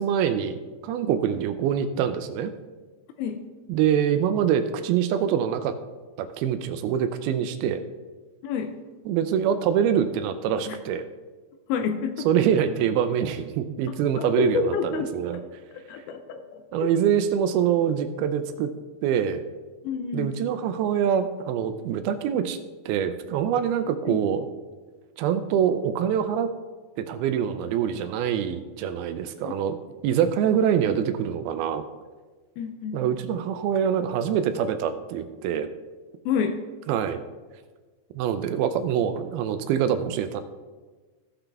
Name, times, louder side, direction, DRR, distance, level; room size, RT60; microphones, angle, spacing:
voice 1, 0.0-2.5 3.7-5.8 6.2-7.8 9.1-11.0 12.3-15.4 16.7-18.7 19.0-19.4 20.1-22.6 22.9-24.4 25.2-26.5 27.0-29.8 30.0-31.8 32.9-35.7 36.9-37.2 38.2-40.4, right 8 dB, 85° right, 10 dB, 2.2 m, -25 dB
voice 2, 8.4-8.8 10.7-10.8 11.7-12.3 13.9-16.9 19.8-20.4 24.1-24.2 29.5-29.6 32.6-33.0 36.3-36.6, left 6 dB, 80° left, 6 dB, 2.2 m, -30 dB
15.5 x 5.8 x 3.4 m, 1.3 s
omnidirectional pair, 4.8 m